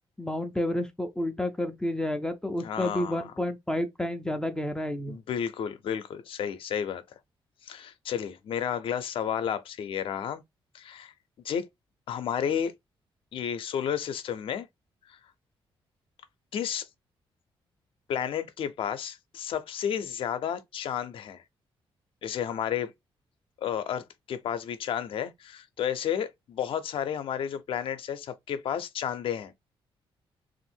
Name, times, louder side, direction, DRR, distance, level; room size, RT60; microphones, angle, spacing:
voice 1, 0.2-5.2, left 1 dB, 5° left, 0.4 m, -30 dB
voice 2, 2.6-3.2 5.1-7.0 7.6-10.4 10.7-11.1 11.4-11.7 12.1-12.7 13.3-14.7 15.1-15.2 16.5-16.9 18.1-21.4 22.2-22.9 23.6-29.6, left 8 dB, 65° left, 0.6 m, -32 dB
3.5 x 2.5 x 4.3 m
wide cardioid pair, 170°, 10 cm